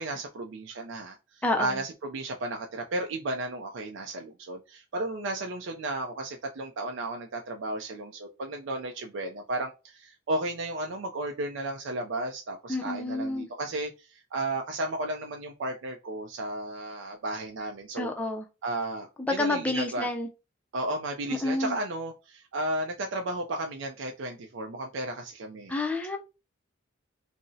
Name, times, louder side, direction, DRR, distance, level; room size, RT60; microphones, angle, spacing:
voice 1, 0.0-18.1 18.6-20.1 20.7-25.7, right 2 dB, 70° right, 3 dB, 0.4 m, -34 dB
voice 2, 1.4-1.8 12.7-13.5 18.0-18.5 19.2-20.3 21.3-21.8 25.7-26.2, left 2 dB, 5° left, 4 dB, 0.4 m, -29 dB
2.6 x 2.0 x 3.8 m, 0.29 s
head